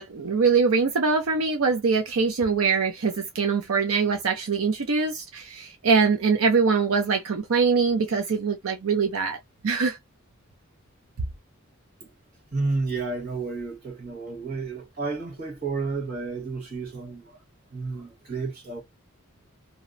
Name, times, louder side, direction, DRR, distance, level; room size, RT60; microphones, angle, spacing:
voice 1, 0.0-9.4 9.6-10.0, right 5 dB, 80° right, 0.5 m, -23 dB
voice 2, 12.5-17.3 17.7-18.8, right 3 dB, 45° right, 1.4 m, -31 dB
2.7 x 2.0 x 2.5 m
head